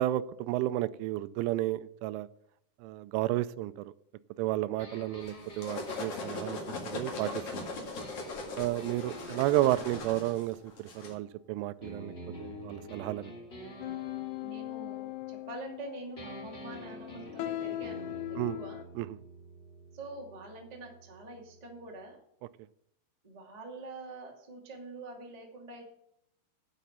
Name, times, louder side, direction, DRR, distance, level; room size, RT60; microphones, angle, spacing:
voice 1, 0.0-2.3 2.8-3.9 4.4-6.6 6.8-7.7 8.6-12.1 12.4-13.3 18.4-18.6 19.0-19.1, right 16 dB, 90° right, 17 dB, 3.0 m, -32 dB
sound 1, 4.8-11.3 11.8-15.8 16.2-21.9, equal, 20° left, 2.1 m, -49 dB
sound 2, 5.3-11.1, left 3 dB, 45° left, 2.0 m, -39 dB
sound 3, 13.8-18.8, left 15 dB, 85° left, 3.1 m, -39 dB
voice 2, 14.4-18.8 19.9-22.2 23.2-25.8, right 2 dB, 35° right, 0 dB, 0.6 m, -45 dB
10.0 x 7.4 x 6.8 m, 0.76 s
omnidirectional pair, 5.4 m